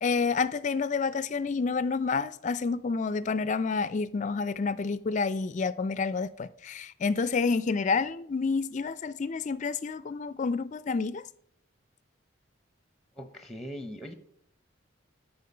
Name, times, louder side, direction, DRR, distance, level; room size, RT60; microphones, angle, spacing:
voice 1, 0.0-11.2, left 4 dB, 35° left, 0.3 m, -29 dB
voice 2, 13.2-14.1, equal, ahead, 0.7 m, -40 dB
12.5 x 4.5 x 5.5 m
head